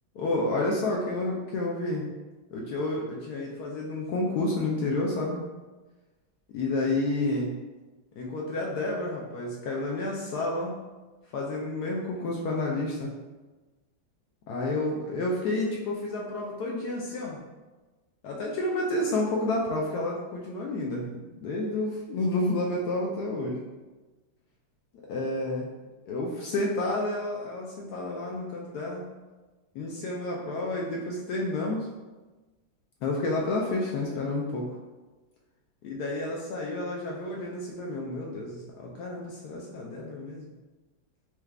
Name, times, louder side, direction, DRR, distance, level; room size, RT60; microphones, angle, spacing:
voice 1, 0.2-2.0 2.5-5.4 6.5-7.5 8.2-10.8 11.3-13.1 14.5-17.4 18.2-23.6 25.1-25.7 26.1-29.0 29.7-31.9 33.0-34.7 35.8-40.5, left 2 dB, 75° left, -2 dB, 0.9 m, -30 dB
4.7 x 2.4 x 3.2 m, 1.2 s
omnidirectional pair, 2.2 m